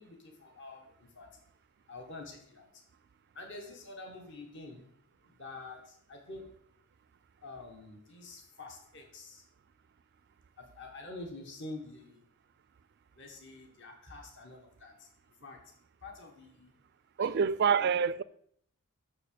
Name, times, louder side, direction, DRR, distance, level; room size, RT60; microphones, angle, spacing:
voice 1, 0.0-1.4 1.9-2.8 3.3-4.9 5.2-6.5 7.4-9.5 10.6-12.3 13.2-15.6 16.0-16.8 17.2-17.9, left 2 dB, 55° left, 1.5 m, -47 dB
voice 2, 17.2-18.2, right 6 dB, 50° right, 0.3 m, -26 dB
6.8 x 6.7 x 6.7 m
head